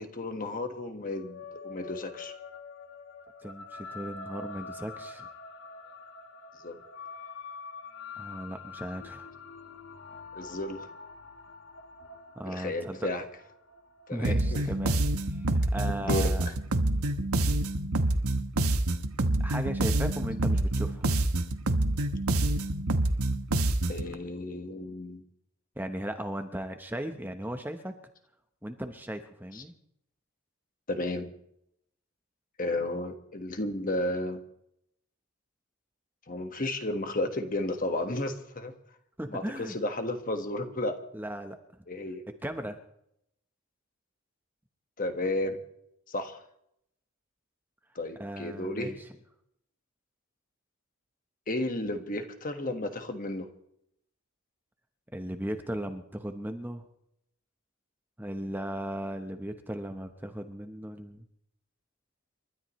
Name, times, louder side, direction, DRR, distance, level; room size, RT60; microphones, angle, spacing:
voice 1, 0.0-2.3 6.6-6.8 10.3-10.9 12.4-13.4 14.1-14.7 16.0-16.3 23.9-25.2 29.5-29.6 30.9-31.3 32.6-34.4 36.3-38.7 39.3-41.0 41.9-42.2 45.0-45.6 46.1-46.4 47.9-49.0 51.5-53.5, left 1 dB, 40° left, 6 dB, 1.5 m, -33 dB
sound 1, 1.1-15.8, left 4 dB, 60° left, 1.6 m, -45 dB
voice 2, 3.4-5.3 8.2-9.3 12.4-13.1 14.1-15.0 15.4-16.4 19.4-21.0 25.8-27.9 28.6-29.7 39.2-39.8 41.1-41.6 42.4-42.8 48.2-49.0 55.1-56.8 58.2-61.2, right 1 dB, 10° right, 6 dB, 0.9 m, -36 dB
sound 2, 14.2-24.1, right 2 dB, 90° right, 1.1 m, -27 dB
29.5 x 13.0 x 3.1 m, 0.75 s
head